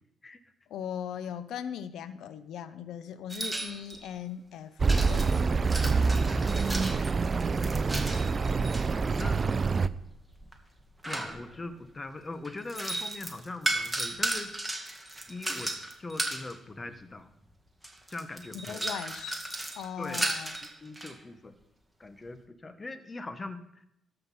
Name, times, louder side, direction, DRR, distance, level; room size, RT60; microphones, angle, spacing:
voice 1, 0.7-4.7 5.0-5.5 18.6-19.4 19.8-20.6, left 9 dB, 80° left, 14 dB, 0.6 m, -39 dB
sound 1, 3.3-4.1 4.9-8.9 9.7-11.7 12.4-16.5 17.4-17.5 17.8-21.1, right 1 dB, 5° right, 1.8 m, -35 dB
Accelerating revving vroom, 4.8-9.9, right 4 dB, 35° right, 0.5 m, -26 dB
voice 2, 6.1-6.9 8.1-8.6 9.2-9.4 11.1-14.7 15.3-17.3 18.1-18.8 20.0-20.3 20.8-21.6 22.0-23.9, left 2 dB, 25° left, 10 dB, 1.0 m, -41 dB
13.5 x 5.8 x 5.6 m, 0.80 s
cardioid pair, 90°, 0 cm